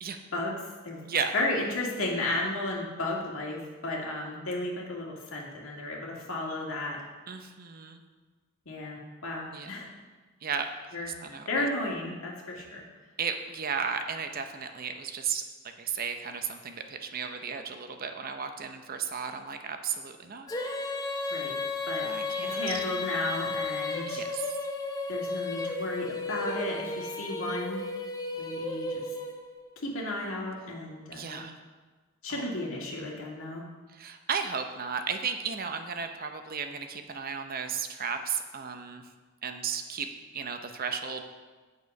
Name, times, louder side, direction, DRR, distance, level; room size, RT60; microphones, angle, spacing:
voice 1, 0.3-1.0 1.3-7.0 8.7-9.9 10.9-11.1 11.5-12.8 21.3-21.5 21.9-22.1 22.4-24.2 25.1-27.9 28.4-29.0 29.8-31.4 32.2-33.6, left 2 dB, 80° left, -2 dB, 2.0 m, -33 dB
voice 2, 7.3-8.0 9.5-9.7 10.4-10.7 11.0-11.6 13.2-15.4 15.8-20.5 21.2-21.3 22.0-22.8 24.1-24.6 31.1-31.5 32.3-32.4 33.9-39.0 39.4-41.2, right 6 dB, 45° right, 7 dB, 0.7 m, -34 dB
Female singing, 20.5-29.6, left 3 dB, 20° left, 0.9 m, -33 dB
8.6 x 6.7 x 5.3 m, 1.3 s
head